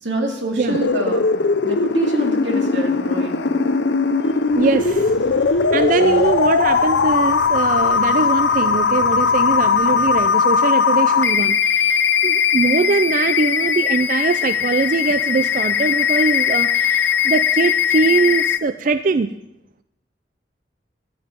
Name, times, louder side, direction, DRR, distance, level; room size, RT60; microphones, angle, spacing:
voice 1, 0.0-1.2 1.6-3.5 6.0-6.2, right 1 dB, 85° right, 2 dB, 2.3 m, -26 dB
sound 1, 0.7-18.6, left 6 dB, 70° left, 0.6 m, -19 dB
sound 2, 4.5-10.3, equal, ahead, 3.6 m, -39 dB
voice 2, 4.6-5.2 5.7-19.3, right 4 dB, 45° right, 11 dB, 0.4 m, -21 dB
13.5 x 5.7 x 8.9 m, 0.86 s
head